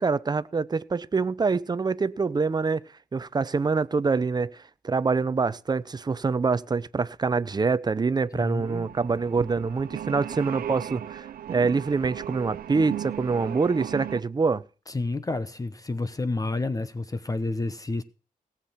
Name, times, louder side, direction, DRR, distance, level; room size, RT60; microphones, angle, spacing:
voice 1, 0.0-2.8 3.1-14.6, right 4 dB, 30° right, 0.6 m, -25 dB
voice 2, 8.3-8.9 14.9-18.0, left 2 dB, 25° left, 0.9 m, -30 dB
sound 1, 8.6-14.2, right 11 dB, 90° right, 0.7 m, -36 dB
18.5 x 7.5 x 5.7 m
cardioid pair, 105°, 15 cm